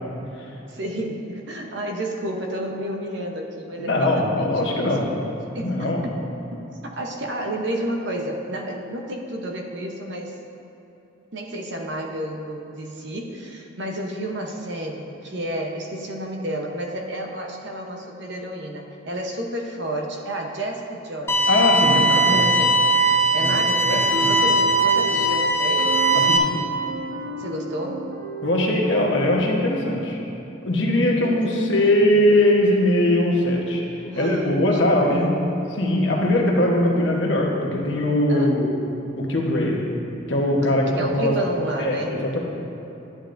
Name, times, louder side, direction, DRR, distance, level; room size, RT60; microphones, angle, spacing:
voice 1, 0.7-6.2 6.5-10.3 11.3-21.4 21.9-22.7 23.2-26.0 27.4-28.1 31.2-32.2 34.1-35.3 38.3-38.6 40.9-42.2, right 1 dB, 60° right, 2 dB, 0.9 m, -31 dB
voice 2, 3.8-5.1 5.6-6.0 21.5-22.4 23.4-23.6 23.9-24.3 26.3-26.6 28.4-30.2 30.6-33.8 34.1-35.3 35.7-38.7 39.2-39.9 40.3-41.3 41.8-42.4, left 1 dB, 65° left, -1 dB, 1.2 m, -21 dB
sound 1, 21.3-26.4, right 2 dB, 10° left, 0.5 m, -19 dB
sound 2, 24.0-29.3, right 2 dB, 90° right, 1.1 m, -32 dB
11.0 x 8.5 x 2.6 m, 2.9 s
head